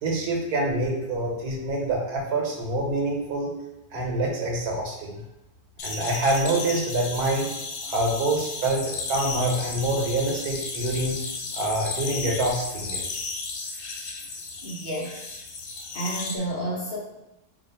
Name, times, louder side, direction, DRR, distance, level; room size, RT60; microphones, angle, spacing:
voice 1, 0.0-3.5 3.9-5.2 5.8-7.5 7.8-11.2 11.5-13.2, right 2 dB, 90° right, -1 dB, 1.3 m, -26 dB
sound 1, 5.8-16.3, left 4 dB, 80° left, 1.1 m, -34 dB
voice 2, 14.6-15.4 15.9-17.0, right 1 dB, 45° left, -4 dB, 0.9 m, -31 dB
2.9 x 2.4 x 4.0 m, 0.94 s
omnidirectional pair, 1.6 m